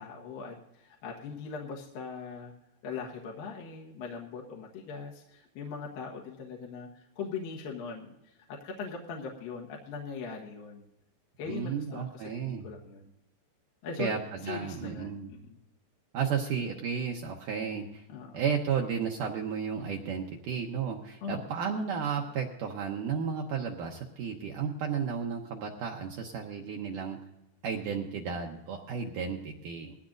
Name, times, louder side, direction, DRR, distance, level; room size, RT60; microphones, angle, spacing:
voice 1, 0.0-2.5 2.8-6.9 7.2-10.9 11.4-13.1 13.8-14.1 14.4-15.6 18.1-18.4 21.2-21.4, left 5 dB, 65° left, -1 dB, 2.7 m, -40 dB
voice 2, 11.5-12.7 14.0-15.3 16.1-18.0 18.3-27.2 27.6-30.0, right 6 dB, 80° right, 1 dB, 1.9 m, -33 dB
20.0 x 15.5 x 2.6 m, 0.89 s
omnidirectional pair, 5.0 m